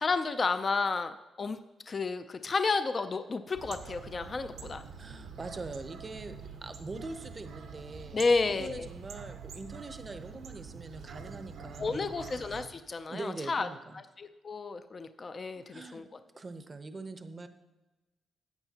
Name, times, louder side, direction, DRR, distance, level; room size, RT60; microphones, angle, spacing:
voice 1, 0.0-1.6 1.9-4.8 8.1-8.9 11.8-13.7 13.9-16.1, left 4 dB, 30° left, 9 dB, 0.4 m, -31 dB
sound 1, 3.5-12.7, right 5 dB, 75° right, 0.9 m, -46 dB
voice 2, 5.0-6.4 6.6-12.1 13.1-14.0 15.7-16.0 16.4-17.5, right 3 dB, 25° right, 9 dB, 0.7 m, -43 dB
14.5 x 8.9 x 2.8 m, 1.1 s
cardioid pair, 140°, 0 cm